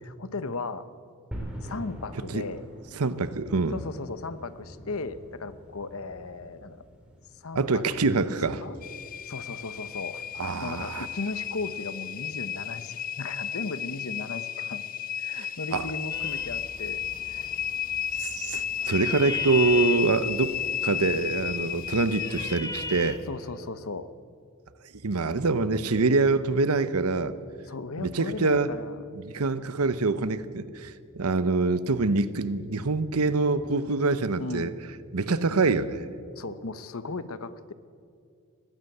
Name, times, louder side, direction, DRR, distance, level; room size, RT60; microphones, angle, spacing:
voice 1, 0.0-0.9 1.6-2.6 3.7-6.8 7.4-8.1 8.6-8.8 9.3-10.2 10.6-14.8 15.2-17.0 17.3-17.5 23.3-24.1 27.7-29.0 34.4-34.8 36.4-37.7, left 3 dB, 70° left, 13 dB, 0.9 m, -36 dB
sound 1, 1.3-11.6, equal, 5° right, 3.7 m, -46 dB
voice 2, 3.0-3.8 7.5-8.6 10.4-11.1 15.4-15.9 18.2-20.6 20.8-23.2 25.0-27.3 28.0-28.7 29.1-30.9 31.2-34.7 35.1-36.0, right 3 dB, 90° right, 14 dB, 0.9 m, -25 dB
sound 2, 8.8-22.6, left 10 dB, 40° left, 0.5 m, -33 dB
sound 3, 16.1-23.3, left 3 dB, 15° left, 1.0 m, -40 dB
21.0 x 15.5 x 7.9 m, 2.3 s
head